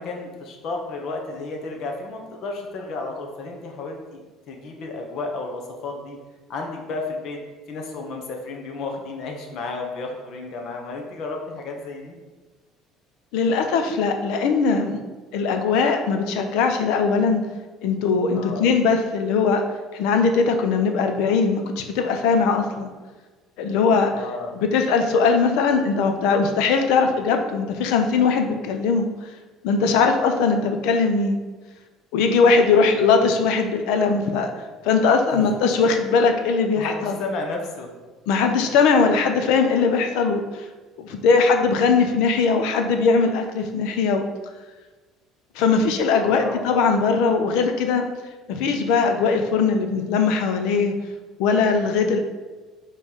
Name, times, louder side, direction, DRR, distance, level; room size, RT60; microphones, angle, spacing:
voice 1, 0.0-6.2 6.5-7.4 7.7-12.1 18.3-18.7 24.1-24.5 32.7-33.0 35.3-35.9 36.7-37.9 46.3-46.6, left 3 dB, 55° left, 2 dB, 1.2 m, -32 dB
voice 2, 13.3-15.0 15.3-17.4 17.8-19.6 19.9-22.9 23.6-24.1 24.5-29.1 29.6-31.4 32.1-34.5 34.8-37.2 38.3-40.6 41.0-44.2 45.5-48.1 48.5-50.9 51.4-52.2, left 5 dB, 80° left, 5 dB, 0.7 m, -20 dB
5.3 x 3.3 x 5.6 m, 1.3 s
cardioid pair, 135°, 0 cm